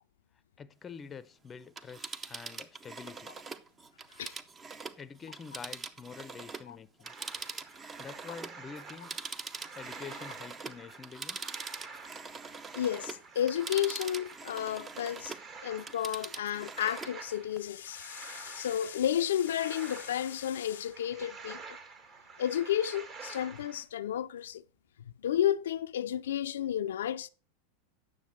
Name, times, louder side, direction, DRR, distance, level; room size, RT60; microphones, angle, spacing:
voice 1, 0.6-3.3 5.0-7.1 8.0-9.2 9.7-11.4, left 6 dB, 25° left, 0.5 m, -47 dB
Telephone, 1.6-6.7 7.0-15.5 15.8-17.2 17.6-17.7, right 4 dB, 25° right, 0.6 m, -43 dB
sound 1, 7.0-23.8, right 4 dB, 40° right, 1.7 m, -49 dB
voice 2, 12.8-15.4 15.6-21.8 22.4-24.6 25.2-27.3, left 10 dB, 80° left, 0.3 m, -32 dB
9.3 x 6.4 x 4.4 m
hypercardioid pair, 100°, 0 cm